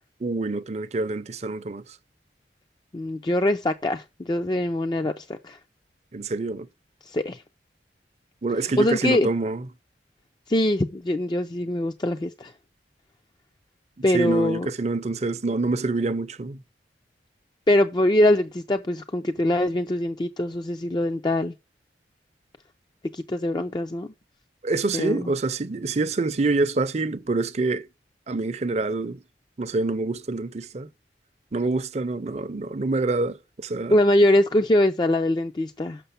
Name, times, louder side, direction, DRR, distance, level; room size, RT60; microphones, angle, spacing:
voice 1, 0.2-2.0 6.1-6.7 8.4-9.7 14.1-16.6 24.6-27.9 28.3-29.2 29.6-30.9 31.5-34.0, right 3 dB, 40° right, 0.6 m, -26 dB
voice 2, 2.9-5.6 7.1-7.4 8.8-9.3 10.5-12.5 14.0-14.7 17.7-21.5 23.1-24.1 24.9-25.2 33.9-36.0, left 1 dB, 25° left, 0.4 m, -23 dB
6.8 x 6.1 x 5.7 m
head